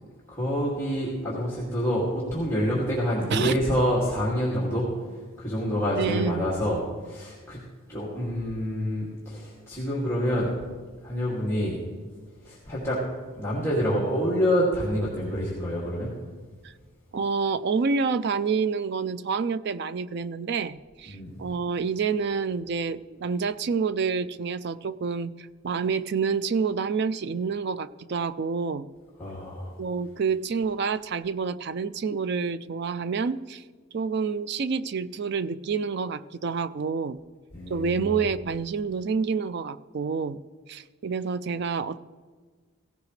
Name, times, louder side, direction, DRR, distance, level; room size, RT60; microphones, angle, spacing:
voice 1, 0.3-7.6 7.9-10.5 11.0-11.8 12.4-13.0 13.4-16.1 21.1-21.5 29.2-29.8 37.5-38.1, equal, 10° left, -7 dB, 2.4 m, -27 dB
voice 2, 6.0-6.4 16.6-16.7 17.1-28.9 29.8-33.6 33.9-37.2 37.7-40.4 40.7-42.0, right 5 dB, 50° right, 16 dB, 0.4 m, -28 dB
16.5 x 15.5 x 3.3 m, 1.5 s
head